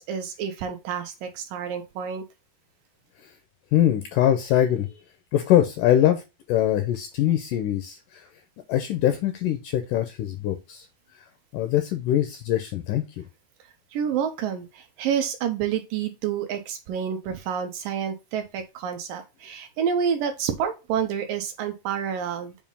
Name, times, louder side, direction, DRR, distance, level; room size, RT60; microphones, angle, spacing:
voice 1, 0.0-2.2 13.9-22.6, right 8 dB, 75° right, 5 dB, 2.2 m, -29 dB
voice 2, 3.7-4.9 5.3-6.2 6.5-8.2 8.7-10.9 11.5-13.2, left 11 dB, 85° left, 7 dB, 1.9 m, -23 dB
7.2 x 2.5 x 5.3 m, 0.26 s
omnidirectional pair, 4.4 m